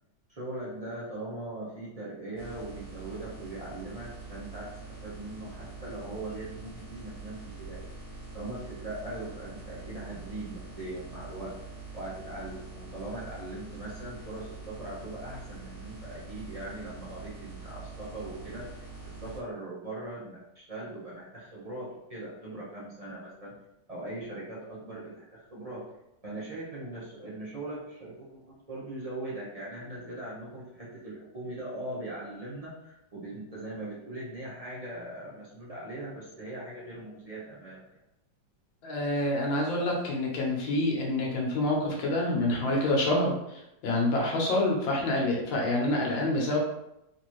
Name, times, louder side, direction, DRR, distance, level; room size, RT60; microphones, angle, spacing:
voice 1, 0.3-4.7 5.0-7.9 8.3-11.5 11.9-23.5 23.9-25.8 26.2-28.4 28.7-37.9, right 2 dB, 55° right, -7 dB, 0.4 m, -40 dB
sound 1, 2.4-19.4, right 3 dB, 35° left, 1.1 m, -44 dB
voice 2, 38.8-46.6, left 1 dB, 85° left, -1 dB, 1.6 m, -27 dB
3.8 x 2.6 x 3.0 m, 0.86 s
omnidirectional pair, 2.0 m